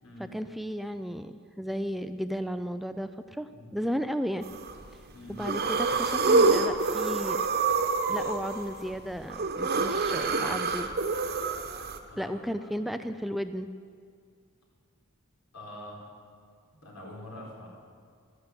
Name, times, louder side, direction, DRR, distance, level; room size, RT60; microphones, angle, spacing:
voice 1, 0.2-4.5 5.3-7.4 8.1-10.9 12.2-13.7, equal, ahead, 9 dB, 0.4 m, -34 dB
sound 1, 4.4-4.8 5.3-12.0, right 4 dB, 50° right, 1.2 m, -27 dB
voice 2, 12.1-12.7 15.5-16.0 16.8-17.7, left 1 dB, 85° left, -2 dB, 4.3 m, -45 dB
13.0 x 12.5 x 8.1 m, 2.2 s
head